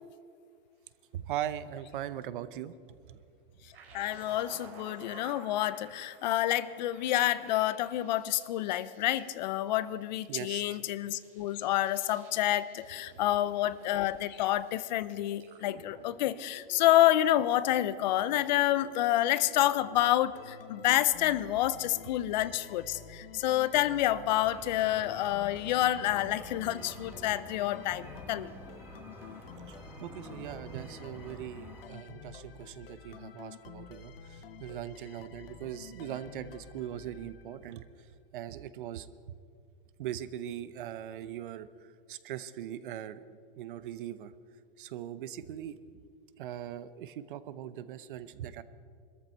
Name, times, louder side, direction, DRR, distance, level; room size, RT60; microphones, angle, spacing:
voice 1, 1.1-2.7 3.1-3.2 10.3-10.8 29.7-37.9 38.3-39.4 40.0-43.3 43.6-44.3 44.8-45.8 46.4-48.6, right 11 dB, 60° right, 15 dB, 0.8 m, -40 dB
sound 1, 3.7-20.2, right 4 dB, 85° right, 4.0 m, -55 dB
voice 2, 3.9-28.5, left 14 dB, 50° left, 17 dB, 0.6 m, -28 dB
sound 2, 20.3-37.9, left 6 dB, 75° left, 1.2 m, -49 dB
sound 3, 24.4-31.8, right 1 dB, 5° right, 1.2 m, -49 dB
21.0 x 13.5 x 4.5 m, 2.4 s
hypercardioid pair, 140°, 29 cm